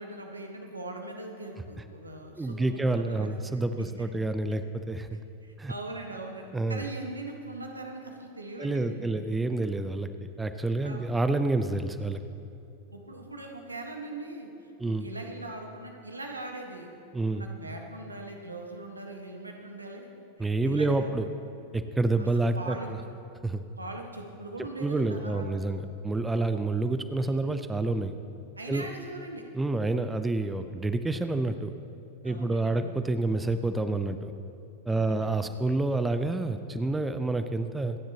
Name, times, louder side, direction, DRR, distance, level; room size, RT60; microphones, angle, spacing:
voice 1, 0.0-3.9 4.5-4.6 5.4-9.2 10.8-11.0 12.9-20.1 20.4-21.1 22.2-22.3 22.6-22.9 23.8-25.6 28.6-29.4 32.2-32.9 34.9-35.3, right 2 dB, 80° right, 2 dB, 1.6 m, -41 dB
voice 2, 2.4-5.2 5.6-5.7 6.5-6.8 8.6-10.1 10.4-12.2 14.8-15.1 17.1-17.4 20.4-21.2 21.7-23.0 23.4-23.6 24.8-28.1 28.7-28.9 29.5-31.7 32.2-34.3 34.9-38.0, right 2 dB, 10° right, 10 dB, 0.6 m, -28 dB
25.5 x 10.0 x 3.0 m, 2.6 s
figure-of-eight pair, 90°, 0 cm